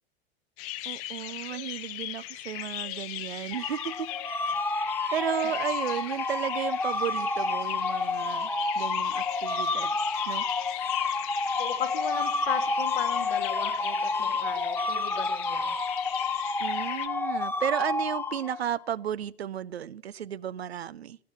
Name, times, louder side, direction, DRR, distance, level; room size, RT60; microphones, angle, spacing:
sound 1, 0.6-17.1, left 15 dB, 45° left, 1.1 m, -38 dB
voice 1, 0.9-4.1 5.1-8.5 8.8-9.9 10.3-10.4 16.6-21.2, right 10 dB, 80° right, 0.5 m, -33 dB
sound 2, 3.5-18.8, left 3 dB, 5° left, 0.8 m, -30 dB
voice 2, 11.5-15.8, left 9 dB, 70° left, 2.4 m, -36 dB
19.0 x 7.9 x 7.6 m
figure-of-eight pair, 85°, 31 cm